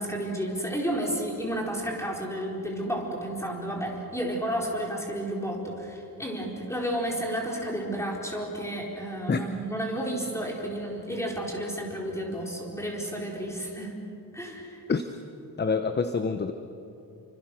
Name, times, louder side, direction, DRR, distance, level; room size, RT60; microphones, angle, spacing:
voice 1, 0.0-13.9 14.3-14.8, right 1 dB, 5° left, -1 dB, 4.3 m, -32 dB
voice 2, 15.6-16.5, left 5 dB, 25° left, 8 dB, 0.8 m, -26 dB
29.0 x 25.0 x 6.3 m, 2.7 s
wide cardioid pair, 160°, 38 cm